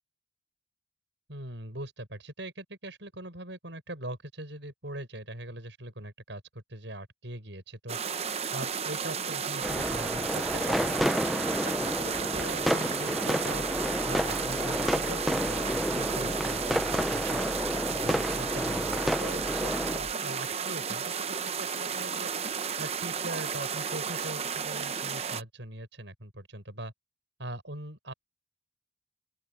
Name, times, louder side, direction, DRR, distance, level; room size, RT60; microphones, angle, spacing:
voice 1, 1.3-8.0 8.5-11.2 11.5-13.6 14.1-17.4 17.9-22.3 22.8-26.9 27.4-28.1, right 1 dB, 70° right, 7.1 m, -41 dB
sound 1, 7.9-25.4, right 6 dB, 35° right, 0.8 m, -33 dB
sound 2, 9.6-20.0, equal, ahead, 0.5 m, -30 dB
sound 3, 13.5-20.1, equal, 20° left, 5.2 m, -44 dB
open air
head